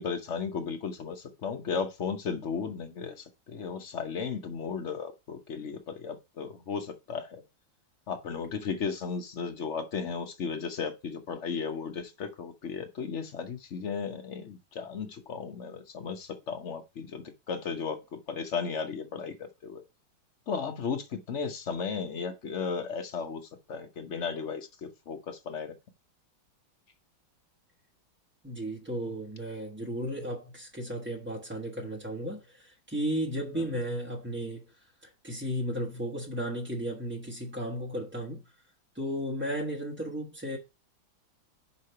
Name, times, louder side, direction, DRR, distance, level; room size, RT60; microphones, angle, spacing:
voice 1, 0.0-7.4 8.1-19.8 20.5-25.7 33.6-33.7, left 5 dB, 50° left, 0.9 m, -35 dB
voice 2, 28.4-34.7 35.0-38.4 38.9-40.6, equal, 10° right, 0.7 m, -34 dB
5.7 x 4.8 x 5.5 m
omnidirectional pair, 2.2 m